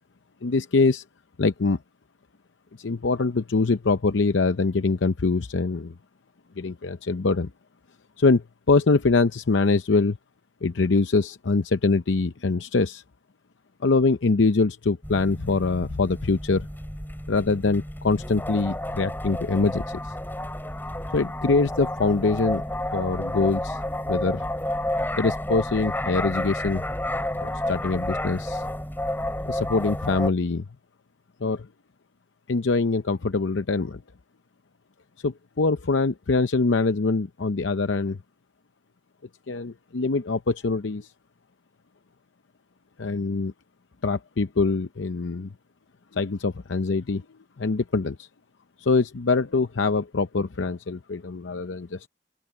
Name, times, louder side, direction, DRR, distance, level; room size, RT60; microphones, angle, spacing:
voice 1, 0.4-1.0 1.4-1.8 2.8-5.9 6.6-7.5 8.2-10.2 10.6-13.0 13.8-16.6 17.3-20.1 21.1-22.6 22.9-23.8 24.1-24.4 25.1-26.8 27.3-28.6 29.5-30.7 31.4-31.7 32.5-34.0 35.2-38.2 39.5-41.1 43.0-43.5 44.0-45.5 46.1-47.2 47.6-48.3 48.8-52.1, left 3 dB, 80° left, 0.7 m, -24 dB
sound 1, 15.0-30.3, left 1 dB, 10° left, 4.0 m, -31 dB
open air
head